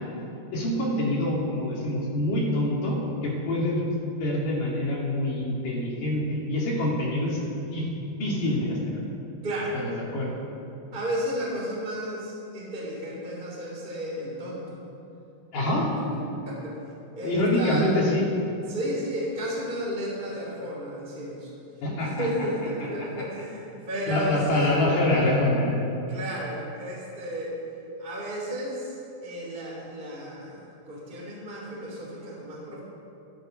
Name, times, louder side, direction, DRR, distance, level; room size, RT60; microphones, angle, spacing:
voice 1, 0.5-3.8 4.2-7.4 7.7-7.9 8.2-9.0 9.7-10.3 15.5-15.9 17.2-18.2 21.8-22.3 24.1-25.8, left 1 dB, 55° left, -4 dB, 4.4 m, -25 dB
voice 2, 9.4-9.8 10.9-14.8 15.9-16.8 17.1-18.1 18.7-21.5 22.0-24.8 26.1-27.5 28.0-28.9 29.2-32.8, equal, 15° right, -4 dB, 2.7 m, -33 dB
12.5 x 11.5 x 7.9 m, 2.9 s
omnidirectional pair, 4.6 m